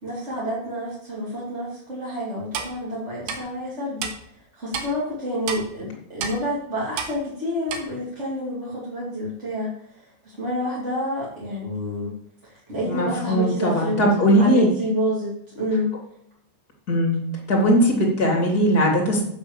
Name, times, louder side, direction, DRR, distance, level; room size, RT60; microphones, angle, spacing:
voice 1, 0.0-4.1 4.5-12.1 12.4-14.0 14.4-15.9, equal, 20° right, -8 dB, 2.4 m, -28 dB
Clock, 2.5-2.7 3.3-3.4 4.0-4.1 4.7-4.9 5.5-5.6 6.2-6.4 7.0-7.1 7.7-7.8, right 6 dB, 65° right, 2.6 m, -28 dB
voice 2, 12.9-14.7 16.9-17.2 17.5-19.2, equal, 25° left, -1 dB, 2.5 m, -19 dB
8.8 x 7.2 x 7.2 m, 0.71 s
omnidirectional pair, 5.7 m